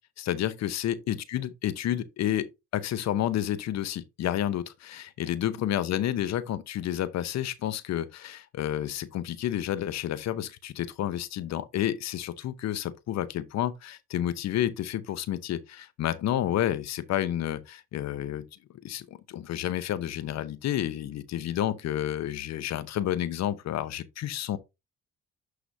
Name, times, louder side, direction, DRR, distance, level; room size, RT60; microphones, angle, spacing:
voice 1, 0.2-2.5 2.7-18.4 18.8-24.6, left 11 dB, 65° left, 0.8 m, -30 dB
11.5 x 4.9 x 2.7 m
supercardioid pair, 65°, 29 cm